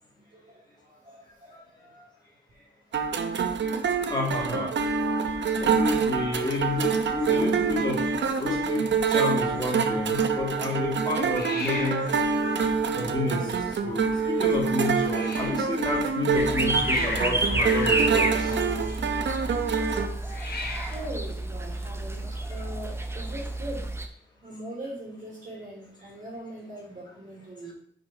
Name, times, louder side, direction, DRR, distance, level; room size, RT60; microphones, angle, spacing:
voice 1, 1.0-1.5 4.8-5.1 6.1-6.2 6.9-7.2 7.6-8.0 20.9-23.8 24.4-27.7, right 1 dB, 45° right, -5 dB, 3.0 m, -41 dB
sound 1, 2.9-20.1, right 5 dB, 90° right, 0.7 m, -26 dB
voice 2, 4.1-4.7 5.6-8.0 8.4-12.1 13.0-13.5 13.8-18.5, left 2 dB, 25° left, -2 dB, 2.2 m, -30 dB
Hiss, 5.0-22.3, left 3 dB, 55° left, 1.4 m, -41 dB
sound 2, 16.3-24.1, right 2 dB, 15° right, 0.7 m, -30 dB
5.7 x 5.3 x 5.3 m, 0.62 s
wide cardioid pair, 160°, 18 cm